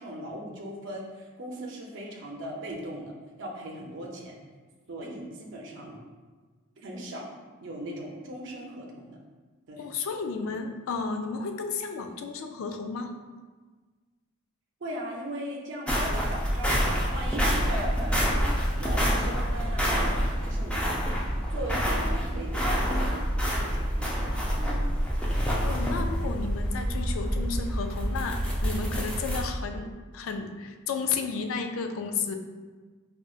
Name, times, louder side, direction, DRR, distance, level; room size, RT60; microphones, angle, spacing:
voice 1, 0.0-3.1 3.4-4.3 4.9-6.0 6.8-7.2 7.6-9.2 9.7-9.9 14.8-18.5 18.8-20.1 20.4-20.9 21.5-23.2 23.6-24.1 24.6-24.9, right 1 dB, 60° right, -1 dB, 0.6 m, -38 dB
voice 2, 9.8-13.1 25.6-29.9 30.1-32.4, left 5 dB, 65° left, 6 dB, 0.3 m, -32 dB
sound 1, 15.9-29.4, equal, 5° left, 0.5 m, -27 dB
4.9 x 2.4 x 2.3 m, 1.4 s
head